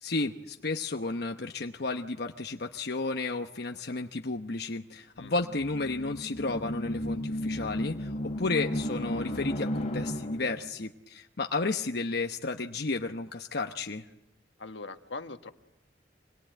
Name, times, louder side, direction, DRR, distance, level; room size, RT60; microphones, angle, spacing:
voice 1, 0.0-14.0, left 3 dB, 60° left, 4 dB, 1.0 m, -32 dB
sound 1, 5.2-10.7, equal, 40° left, 3.2 m, -34 dB
voice 2, 14.6-15.5, left 3 dB, 80° left, 7 dB, 1.5 m, -41 dB
26.0 x 22.0 x 9.2 m, 0.86 s
head